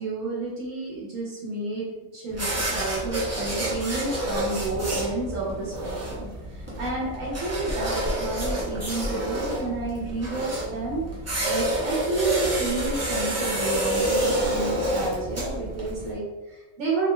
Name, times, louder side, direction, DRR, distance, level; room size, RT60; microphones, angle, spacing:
voice 1, 0.0-1.9 2.1-11.0 11.5-17.1, right 3 dB, 85° right, -7 dB, 1.1 m, -30 dB
sound 1, 2.3-16.1, right 1 dB, 25° right, 0.3 m, -28 dB
3.0 x 2.6 x 2.2 m, 1.2 s
omnidirectional pair, 1.3 m